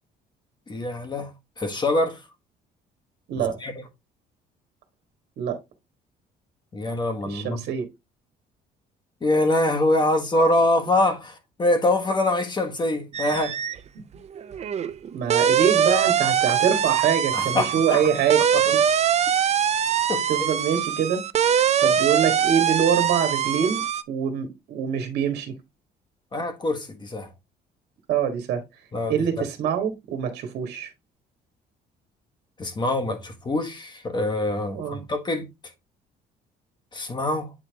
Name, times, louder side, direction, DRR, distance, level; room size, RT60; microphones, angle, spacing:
voice 1, 0.7-1.3 1.6-2.2 3.4-3.7 6.7-7.6 9.2-13.6 17.3-18.0 18.5-18.6 20.1-20.2 26.3-27.3 28.9-29.5 32.6-35.5 36.9-37.5, left 1 dB, 25° left, 1.4 m, -24 dB
voice 2, 3.3-3.6 5.4-5.6 7.2-7.9 15.1-18.4 20.3-21.2 21.8-23.8 24.1-25.5 28.1-28.6 29.1-30.9 34.7-35.0, right 8 dB, 75° right, 1.5 m, -24 dB
sound 1, 13.1-13.8 14.1-24.0, right 8 dB, 40° right, 0.6 m, -23 dB
8.5 x 3.4 x 3.3 m
cardioid pair, 110°, 17 cm